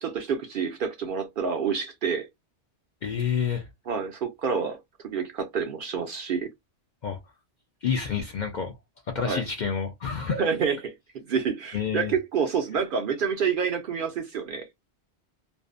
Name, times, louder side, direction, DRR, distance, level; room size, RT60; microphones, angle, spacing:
voice 1, 0.0-2.3 3.9-4.8 5.1-6.5 9.2-9.4 10.3-14.7, right 6 dB, 60° right, 0.6 m, -28 dB
voice 2, 3.0-3.7 7.0-7.2 7.8-8.8 9.1-10.5 11.7-12.2, left 7 dB, 55° left, 0.5 m, -29 dB
2.5 x 2.0 x 2.4 m
omnidirectional pair, 1.2 m